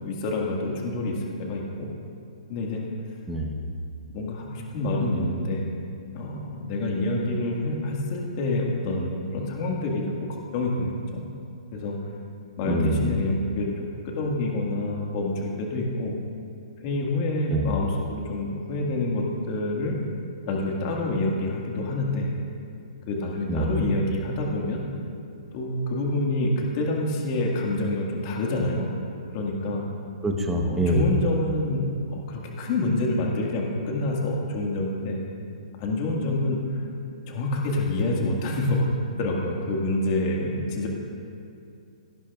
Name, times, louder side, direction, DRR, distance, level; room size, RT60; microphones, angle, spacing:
voice 1, 0.0-1.9 2.5-2.9 4.1-5.6 6.1-10.0 10.5-11.2 11.7-12.0 12.6-16.2 16.8-20.0 20.4-22.3 23.1-24.8 25.5-28.9 29.3-29.8 30.6-35.2 35.8-36.6 37.3-38.9 39.2-40.9, left 2 dB, 35° left, -1 dB, 1.8 m, -27 dB
voice 2, 3.3-3.6 12.6-13.1 17.5-17.7 23.5-23.7 30.2-31.0, right 1 dB, 5° right, 1 dB, 0.9 m, -25 dB
17.0 x 10.0 x 2.4 m, 2.6 s
hypercardioid pair, 155°, 4 cm